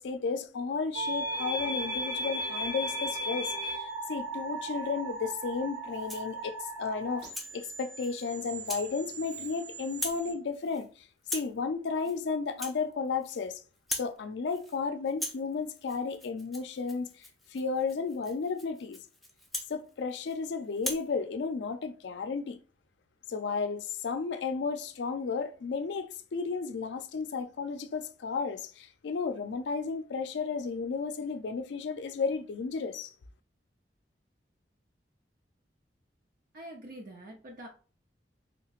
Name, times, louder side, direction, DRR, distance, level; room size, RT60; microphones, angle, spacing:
voice 1, 0.0-7.2 7.5-10.9 11.3-13.6 13.9-19.0 19.7-22.6 23.3-33.1, left 5 dB, 75° left, 0.4 m, -33 dB
sound 1, 0.9-10.3, right 1 dB, 80° right, 1.3 m, -37 dB
Rattle (instrument), 5.9-6.3 6.8-7.5 8.0-8.2 8.7-8.9 9.2-9.6 9.9-10.3 10.5-10.9 11.2-11.6 11.9-12.2 12.5-13.5 13.7-14.2 14.5-14.8 15.1-20.4 20.7-21.1, left 1 dB, ahead, 0.4 m, -40 dB
voice 2, 36.5-37.7, right 1 dB, 50° right, 0.6 m, -45 dB
3.4 x 2.9 x 2.4 m
head